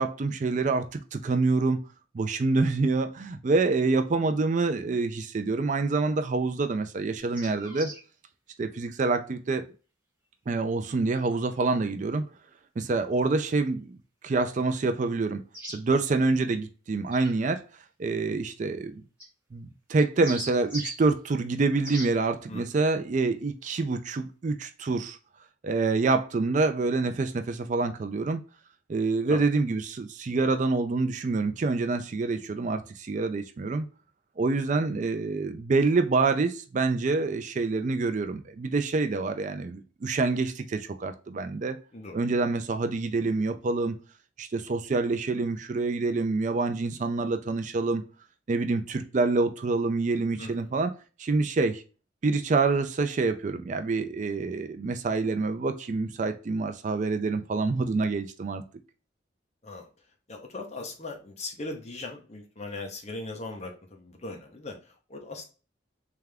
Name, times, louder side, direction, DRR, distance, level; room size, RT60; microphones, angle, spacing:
voice 1, 0.0-1.8 2.1-7.9 8.6-9.6 10.5-12.2 12.8-14.0 14.2-15.4 15.7-17.6 18.0-18.9 19.5-25.2 25.6-28.4 28.9-33.9 34.4-41.8 42.1-44.0 44.4-48.0 48.5-50.9 51.2-51.8 52.2-58.6, right 3 dB, 40° right, 8 dB, 0.4 m, -26 dB
sound 1, 7.2-8.0 11.2-11.3 15.5-15.8 17.1-17.3 19.2-19.3 20.0-21.0 21.8-22.1, equal, 5° right, 1.7 m, -39 dB
voice 2, 50.4-50.7 59.6-59.9 60.3-65.4, left 2 dB, 35° left, 2 dB, 0.9 m, -39 dB
3.5 x 3.4 x 3.4 m, 0.35 s
head